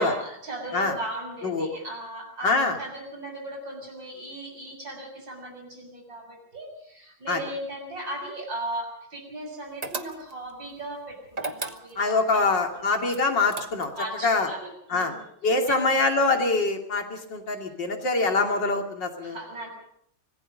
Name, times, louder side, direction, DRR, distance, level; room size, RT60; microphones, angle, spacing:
voice 1, 0.0-13.0 14.0-15.9 19.2-19.7, right 1 dB, 70° right, 2 dB, 7.5 m, -37 dB
voice 2, 2.4-2.8 7.3-7.4 12.0-13.9 14.2-14.5 14.9-15.1 15.4-19.4, left 3 dB, 65° left, 4 dB, 3.3 m, -24 dB
sound 1, 9.8-10.5 11.3-12.2 13.1-14.1, right 3 dB, 25° right, 1.0 m, -35 dB
25.0 x 19.5 x 5.3 m, 0.70 s
omnidirectional pair, 2.1 m